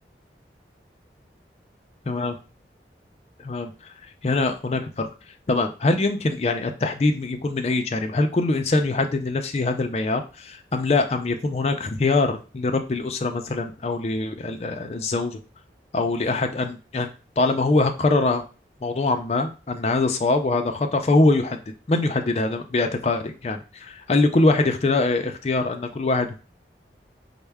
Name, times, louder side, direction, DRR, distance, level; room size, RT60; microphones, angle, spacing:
voice 1, 4.2-5.1 5.5-15.4 15.9-17.1 17.4-18.4 18.8-21.6 21.9-26.4, left 2 dB, 35° left, 5 dB, 0.4 m, -23 dB
4.4 x 2.1 x 3.4 m, 0.34 s
head